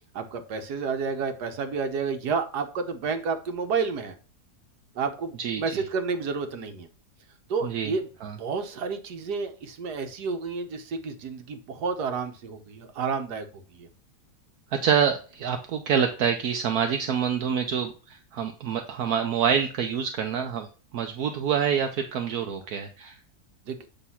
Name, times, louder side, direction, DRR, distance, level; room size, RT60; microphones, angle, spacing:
voice 1, 0.1-4.1 4.9-6.9 7.5-8.1 8.4-13.9 23.6-23.9, right 5 dB, 90° right, 7 dB, 1.6 m, -30 dB
voice 2, 5.4-5.8 7.6-7.9 8.2-8.3 14.8-20.7 20.9-23.2, right 7 dB, 70° right, 5 dB, 1.2 m, -26 dB
8.1 x 3.4 x 5.6 m, 0.38 s
omnidirectional pair, 1.7 m